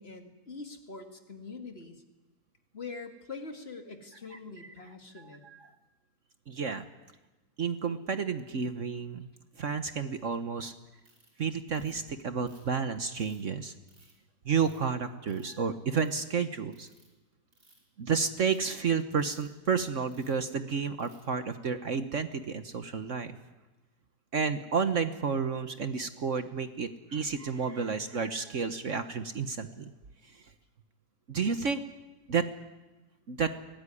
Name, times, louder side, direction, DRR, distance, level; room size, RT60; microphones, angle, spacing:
voice 1, 0.0-2.0 2.7-5.4, left 4 dB, 40° left, 4 dB, 2.5 m, -44 dB
voice 2, 6.5-6.8 7.6-9.3 9.6-10.7 11.4-13.7 14.4-16.9 18.0-23.4 24.3-29.9 30.3-30.4 31.3-31.8 32.3-32.5 33.3-33.6, right 5 dB, 50° right, 9 dB, 1.4 m, -31 dB
Ratchet pawl, 11.0-11.3 11.7-12.1 12.5-13.4 13.9-14.1 14.6-14.9 15.3-15.6 15.9-16.2 16.7-17.1 17.5-17.9 18.3-18.6 19.2-19.5 20.1-20.4 21.0-21.3, right 2 dB, 70° right, 6.4 m, -62 dB
23.5 x 18.5 x 9.9 m, 1.1 s
omnidirectional pair, 1.7 m